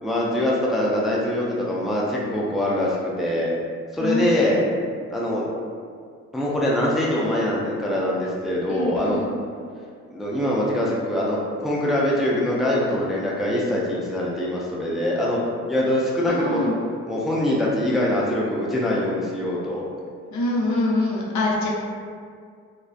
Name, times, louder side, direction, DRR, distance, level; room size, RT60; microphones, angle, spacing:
voice 1, 0.0-3.5 3.9-4.6 5.1-5.4 6.3-9.2 10.1-15.4 15.7-16.7 17.1-19.8, left 1 dB, ahead, -5 dB, 0.3 m, -23 dB
voice 2, 4.0-4.5 8.7-9.3 16.3-16.8 20.3-21.7, left 2 dB, 70° left, -4 dB, 0.6 m, -24 dB
2.4 x 2.2 x 2.4 m, 2.1 s
cardioid pair, 90°, 30 cm